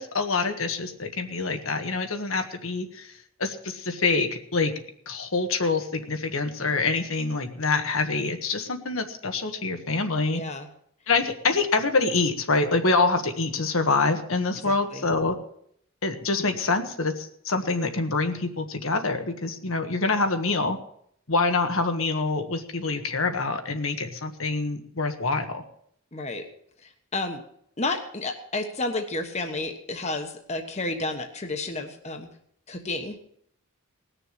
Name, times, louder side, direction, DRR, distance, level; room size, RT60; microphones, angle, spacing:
voice 1, 0.0-3.1 3.4-4.7 5.1-10.4 11.1-15.3 16.0-20.8 21.3-25.6, left 3 dB, 75° left, 6 dB, 1.5 m, -26 dB
voice 2, 10.3-10.7 14.6-15.1 26.1-26.4 26.8-27.4 27.8-32.3 32.7-33.2, left 2 dB, 30° left, 5 dB, 1.3 m, -31 dB
19.0 x 6.9 x 7.6 m, 0.69 s
head